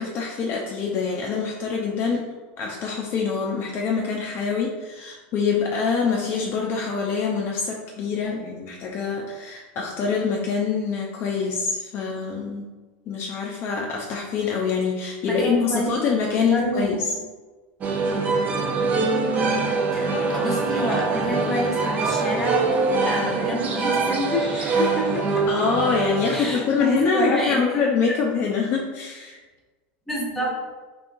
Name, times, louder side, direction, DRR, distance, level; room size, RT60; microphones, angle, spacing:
voice 1, 0.0-2.3 2.6-12.7 13.1-17.2 25.5-29.4, left 5 dB, 40° left, -1 dB, 0.5 m, -25 dB
voice 2, 15.2-15.9 16.3-17.0 19.9-25.5 26.3-27.8 30.1-30.6, equal, 5° left, -3 dB, 1.0 m, -28 dB
sound 1, 17.8-27.0, right 3 dB, 30° right, 0.5 m, -24 dB
3.6 x 3.6 x 2.5 m, 1.3 s
supercardioid pair, 130°, 6 cm